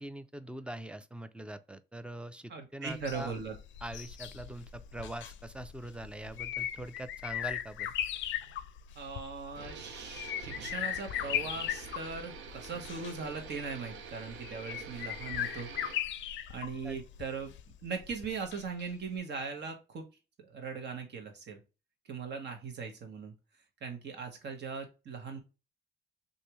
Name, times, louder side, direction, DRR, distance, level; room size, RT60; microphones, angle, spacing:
voice 1, 0.0-3.3 3.8-7.9 16.8-17.0, right 1 dB, 5° right, 0.4 m, -43 dB
voice 2, 2.5-3.5 8.9-15.7 16.5-17.5 17.8-20.0 20.4-21.6 22.0-23.3 23.8-25.4, right 5 dB, 60° right, 1.2 m, -39 dB
sound 1, 2.9-18.9 19.2-19.3, left 11 dB, 70° left, 0.4 m, -39 dB
sound 2, 9.5-16.0, right 7 dB, 85° right, 0.6 m, -47 dB
3.3 x 2.6 x 2.9 m
cardioid pair, 90°, 20 cm